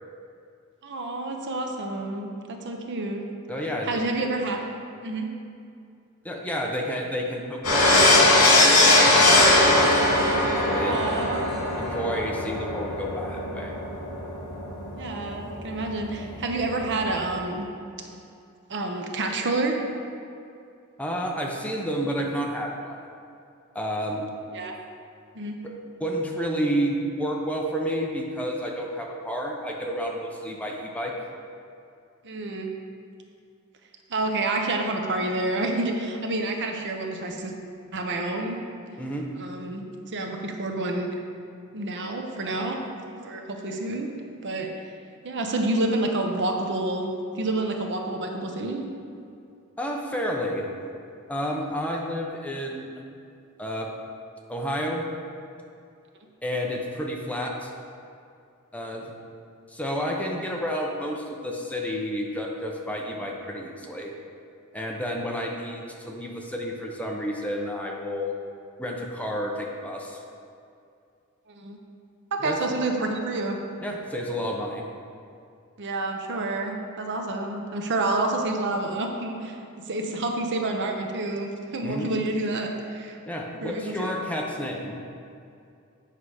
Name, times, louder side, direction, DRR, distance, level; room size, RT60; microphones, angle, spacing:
voice 1, 0.8-3.2 3.8-4.6 5.0-5.3 10.8-11.5 14.9-17.7 18.7-19.8 24.5-24.8 25.3-25.6 32.2-32.7 34.1-37.5 37.9-38.6 39.4-41.2 41.7-42.8 43.2-44.1 44.4-44.7 45.2-47.1 47.3-48.9 71.5-71.8 72.3-73.6 75.8-79.6 79.9-83.2 83.6-84.1, right 2 dB, 55° right, 3 dB, 0.8 m, -28 dB
voice 2, 3.5-4.0 6.2-10.0 10.6-11.3 11.8-13.7 21.0-23.0 23.7-24.3 26.0-31.1 39.0-39.3 49.8-50.7 51.3-53.0 53.6-53.9 54.5-55.1 56.4-57.7 58.7-59.1 59.7-64.1 64.7-68.4 68.8-70.2 72.4-72.6 73.8-74.9 81.8-82.1 83.3-85.0, equal, 5° left, -1 dB, 0.8 m, -30 dB
sound 1, 7.6-16.7 17.0-17.2, left 2 dB, 80° left, 2.1 m, -20 dB
8.4 x 5.7 x 4.9 m, 2.5 s
head